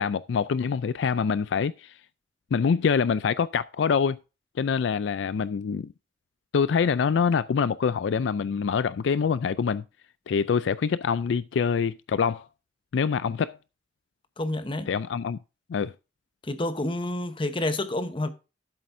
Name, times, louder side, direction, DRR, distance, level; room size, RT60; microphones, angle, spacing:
voice 1, 0.0-1.9 2.5-4.2 4.6-5.9 6.5-9.8 10.3-12.5 12.9-13.6 14.9-15.4 15.7-15.9, left 6 dB, 75° left, 0.4 m, -25 dB
voice 2, 14.4-14.9 16.4-18.3, left 1 dB, 30° left, 1.0 m, -29 dB
12.5 x 7.5 x 2.6 m
head